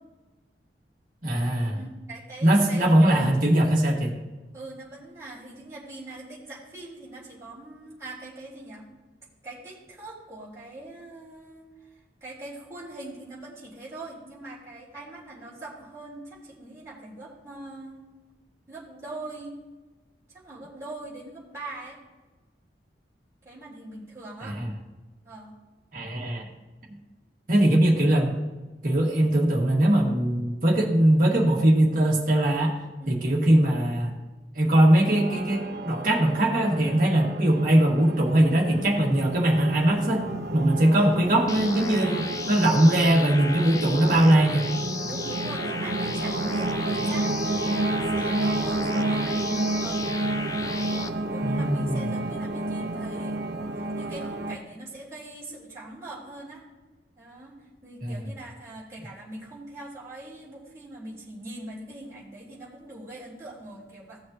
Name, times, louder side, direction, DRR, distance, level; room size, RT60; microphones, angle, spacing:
voice 1, 1.2-1.8 2.4-4.1 24.4-24.7 25.9-26.5 27.5-28.4 28.8-32.7 33.1-34.1 34.6-40.3 40.5-44.7 51.4-52.1 58.0-58.2, right 1 dB, 50° right, -1 dB, 1.9 m, -21 dB
voice 2, 1.7-3.1 4.5-8.9 9.4-18.0 18.7-19.5 20.3-22.0 23.4-24.6 25.2-25.6 33.0-33.3 40.7-41.4 42.6-42.9 45.0-50.1 50.6-56.6 57.2-57.6 57.8-64.2, right 2 dB, 15° right, -9 dB, 3.6 m, -42 dB
sound 1, 35.0-54.6, right 2 dB, 75° right, 0.9 m, -30 dB
sound 2, 41.5-51.1, left 4 dB, 20° left, 0.4 m, -36 dB
17.0 x 6.5 x 2.9 m, 1.2 s
head